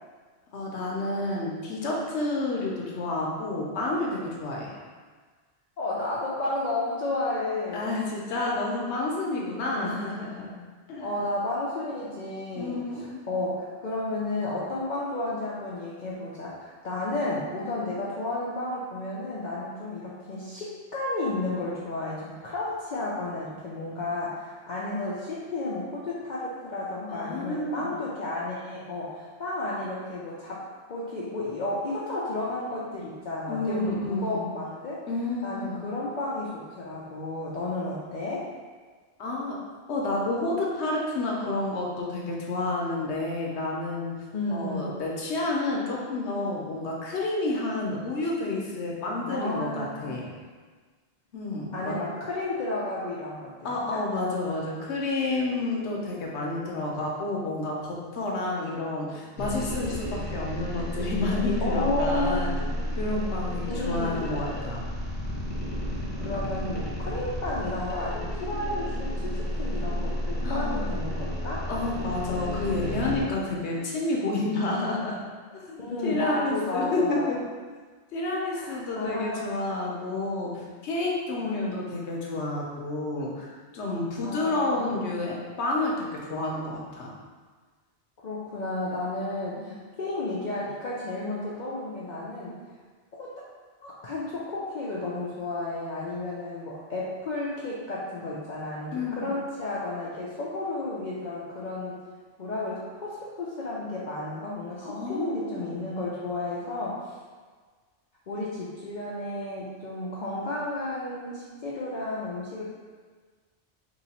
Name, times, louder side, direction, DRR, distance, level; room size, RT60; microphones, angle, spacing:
voice 1, 0.5-4.7 7.7-10.6 10.9-11.1 12.6-13.2 27.1-27.9 33.5-34.4 35.1-35.8 39.2-39.6 39.9-44.1 44.5-50.3 51.3-51.9 53.6-64.8 70.4-70.7 71.7-75.2 75.5-77.4 78.1-87.1 89.6-89.7 98.9-99.4 104.8-105.7, left 2 dB, 80° left, -2 dB, 1.0 m, -30 dB
voice 2, 5.8-7.9 9.6-10.0 11.0-30.6 30.9-35.1 35.4-38.5 44.3-44.8 49.2-50.2 51.7-54.0 59.7-59.9 61.6-62.4 63.7-64.2 65.9-71.6 75.8-77.3 78.5-79.4 81.4-81.7 84.2-85.0 88.2-92.6 93.2-93.3 93.8-102.0 102.4-107.2 108.3-112.6, left 2 dB, 55° left, -7 dB, 0.6 m, -32 dB
sound 1, 59.4-73.3, equal, 10° left, 0.9 m, -32 dB
3.0 x 2.9 x 4.1 m, 1.5 s
omnidirectional pair, 1.1 m